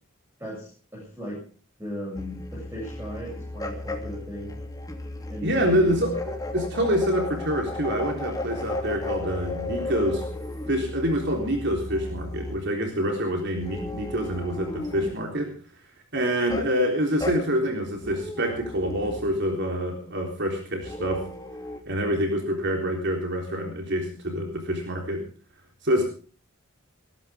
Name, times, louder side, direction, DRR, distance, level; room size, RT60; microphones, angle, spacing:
voice 1, 0.4-1.4 1.8-4.5 5.3-6.1, equal, 10° right, -3 dB, 7.8 m, -37 dB
sound 1, 2.2-12.7 13.6-15.3 16.5-16.8 17.2-17.4 18.0-19.4 20.8-21.8, left 2 dB, 20° left, 2.9 m, -35 dB
voice 2, 5.4-10.2 10.7-15.5 16.1-21.2 21.9-25.2 25.8-26.1, equal, 55° right, 2 dB, 3.7 m, -26 dB
20.5 x 17.0 x 3.6 m, 0.41 s
head